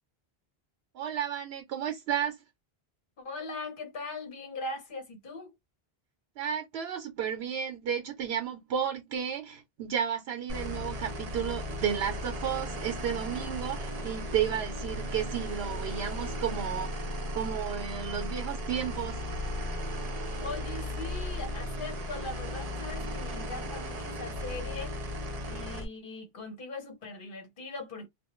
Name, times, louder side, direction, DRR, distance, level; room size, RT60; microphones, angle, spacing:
voice 1, 0.9-2.4 6.4-17.0 17.3-19.2, right 8 dB, 80° right, 0.9 m, -33 dB
voice 2, 3.2-5.5 20.0-20.1 20.4-25.0 25.5-28.1, left 3 dB, 55° left, 1.0 m, -40 dB
sound 1, 10.5-25.9, left 1 dB, 45° right, 0.6 m, -36 dB
2.2 x 2.1 x 2.9 m
omnidirectional pair, 1.1 m